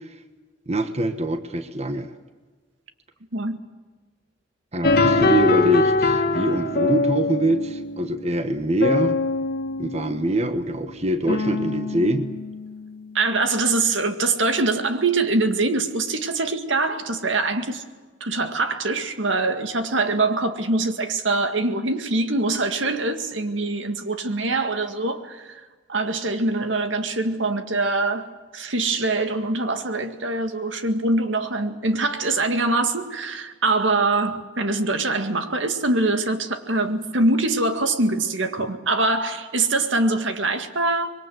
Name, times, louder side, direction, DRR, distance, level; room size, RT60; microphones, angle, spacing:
voice 1, 0.7-2.1 4.7-9.2 9.8-12.3 38.6-38.7, right 1 dB, 35° right, 1.3 m, -24 dB
sound 1, 4.8-13.0, left 3 dB, 55° left, 1.9 m, -24 dB
voice 2, 13.1-17.8 18.2-41.1, right 2 dB, 90° right, 2.1 m, -23 dB
25.0 x 22.5 x 7.8 m
head